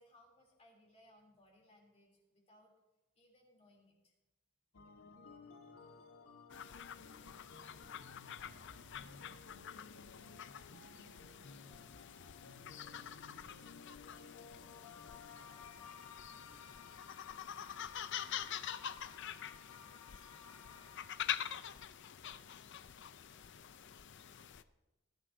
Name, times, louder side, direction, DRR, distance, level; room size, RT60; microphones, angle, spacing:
voice 1, 0.0-2.7 3.1-4.1, left 1 dB, 30° left, -1 dB, 3.1 m, -65 dB
sound 1, 4.7-22.4, left 5 dB, 85° left, 1.1 m, -57 dB
sound 2, 6.5-24.6, left 9 dB, 55° left, 0.5 m, -46 dB
voice 2, 6.9-8.7 9.0-15.1 15.4-15.7 16.2-17.8 18.1-20.1 20.4-21.9, right 2 dB, 50° right, 1 dB, 1.8 m, -72 dB
19.5 x 12.0 x 2.7 m, 1.1 s
head